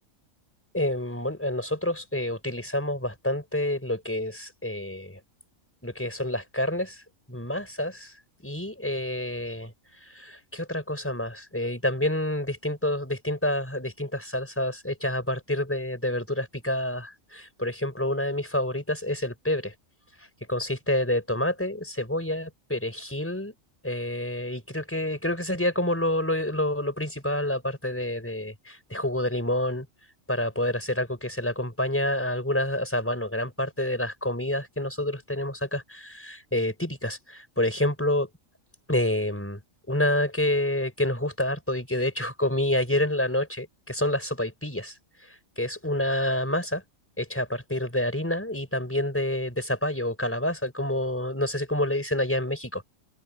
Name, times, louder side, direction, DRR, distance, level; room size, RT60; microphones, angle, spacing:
voice 1, 0.7-5.2 5.8-7.0 7.3-8.1 8.4-9.7 10.0-19.7 20.5-23.5 23.8-29.9 30.3-38.3 38.9-39.6 39.9-44.9 45.3-46.8 47.2-52.8, left 1 dB, 10° left, 4.6 m, -28 dB
omnidirectional pair, 1.4 m